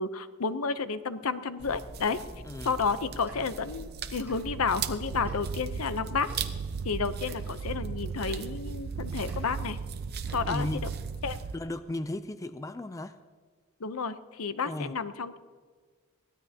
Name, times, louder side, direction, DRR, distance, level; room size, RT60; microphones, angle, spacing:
voice 1, 0.0-2.2 2.6-6.3 6.8-9.8 10.3-10.7 11.2-11.4 13.8-15.4, left 5 dB, 75° left, 12 dB, 0.7 m, -31 dB
sound 1, 1.6-11.6, right 5 dB, 45° right, 0.8 m, -41 dB
voice 2, 2.4-2.8 10.5-10.9 11.5-13.2 14.7-15.0, left 1 dB, 15° left, 11 dB, 0.3 m, -35 dB
Tick-tock, 3.3-3.4 4.2-4.4 5.2-5.4 6.2-6.4 7.2-7.4 8.2-8.4 9.2-9.4 10.2-10.4, right 2 dB, 10° right, 4.5 m, -50 dB
sound 2, 4.5-11.5, right 6 dB, 70° right, 0.4 m, -37 dB
22.5 x 16.0 x 2.8 m, 1.5 s
head